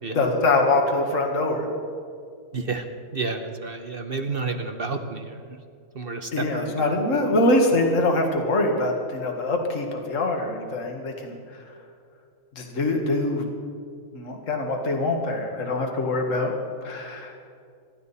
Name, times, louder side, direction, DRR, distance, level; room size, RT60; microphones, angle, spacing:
voice 1, 0.1-1.7 6.3-11.6 12.6-13.5 14.1-16.5 16.8-17.3, left 2 dB, 55° left, 2 dB, 2.1 m, -24 dB
voice 2, 2.5-2.8 3.1-5.4 5.9-6.9, right 4 dB, 45° right, 6 dB, 1.0 m, -30 dB
26.0 x 12.0 x 4.2 m, 2.3 s
omnidirectional pair, 1.6 m